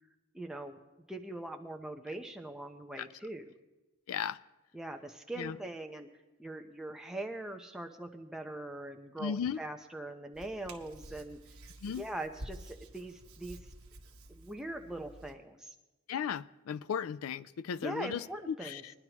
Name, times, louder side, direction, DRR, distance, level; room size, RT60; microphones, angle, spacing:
voice 1, 0.3-0.8 1.1-3.5 4.7-6.1 6.4-11.4 11.8-13.6 14.3-15.7 17.7-18.8, right 1 dB, 5° right, 0.8 m, -42 dB
voice 2, 4.1-4.4 5.4-5.6 9.2-9.6 11.8-12.0 16.1-18.9, left 7 dB, 85° left, 0.3 m, -36 dB
Hands, 10.3-15.3, right 1 dB, 85° right, 1.2 m, -50 dB
21.5 x 10.5 x 3.0 m
head